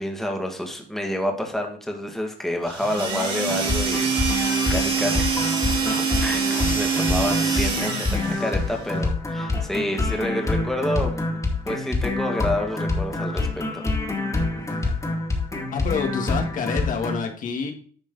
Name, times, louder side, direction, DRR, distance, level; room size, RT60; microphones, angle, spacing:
voice 1, 0.0-5.5 5.9-11.4 11.7-13.8, left 1 dB, ahead, 2 dB, 2.1 m, -29 dB
sound 1, 2.7-8.5, right 5 dB, 30° right, 3.0 m, -25 dB
sound 2, 3.5-17.2, left 3 dB, 20° left, 2.3 m, -27 dB
voice 2, 14.7-15.2 15.7-17.7, left 5 dB, 50° left, 4 dB, 1.8 m, -28 dB
10.5 x 6.1 x 4.0 m, 0.43 s
cardioid pair, 110°, 17 cm